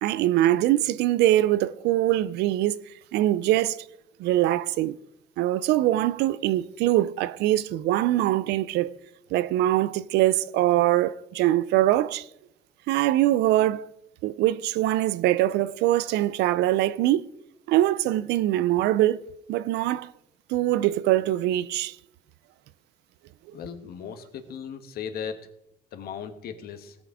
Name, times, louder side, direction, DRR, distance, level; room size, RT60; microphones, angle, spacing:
voice 1, 0.0-2.8 3.1-3.8 4.2-5.0 5.4-8.9 9.3-12.3 12.9-13.9 14.2-17.2 17.7-19.2 19.5-20.1 20.5-22.0, right 14 dB, 85° right, 0.5 m, -23 dB
voice 2, 23.5-25.4 25.9-27.0, left 7 dB, 65° left, 1.3 m, -37 dB
17.5 x 5.9 x 4.9 m
cardioid pair, 110°, 17 cm